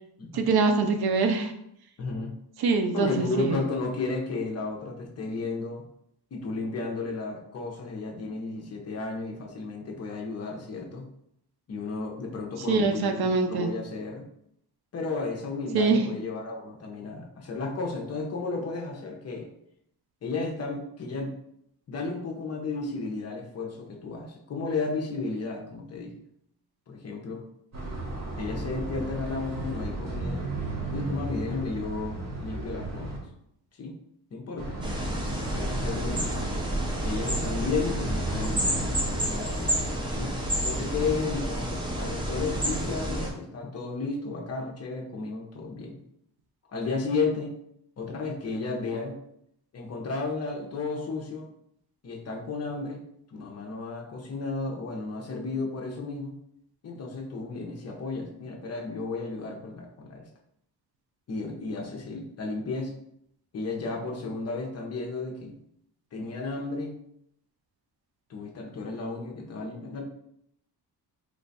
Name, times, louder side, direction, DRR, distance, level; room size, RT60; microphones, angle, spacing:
voice 1, 0.3-1.5 2.6-3.6 12.7-13.7 15.7-16.1, right 4 dB, 70° right, 6 dB, 0.5 m, -24 dB
voice 2, 2.0-2.3 2.9-5.8 6.3-11.0 11.7-14.3 14.9-19.5 20.2-21.3 21.9-26.1 26.9-27.5 28.4-30.5 30.9-33.2 33.8-34.0 34.3-34.8 35.5-36.3 37.0-39.0 39.3-46.0 46.7-47.6 48.0-49.2 49.7-51.5 52.0-53.0 53.3-56.3 56.8-60.3 61.3-62.9 63.5-65.6 66.1-66.9 68.3-70.0, left 3 dB, 40° left, 0 dB, 0.6 m, -33 dB
sound 1, 27.7-33.2 34.6-39.3, right 2 dB, 40° right, 0.8 m, -34 dB
sound 2, 34.8-43.3, equal, 15° right, 0.4 m, -30 dB
3.2 x 2.3 x 3.9 m, 0.73 s
wide cardioid pair, 180°, 39 cm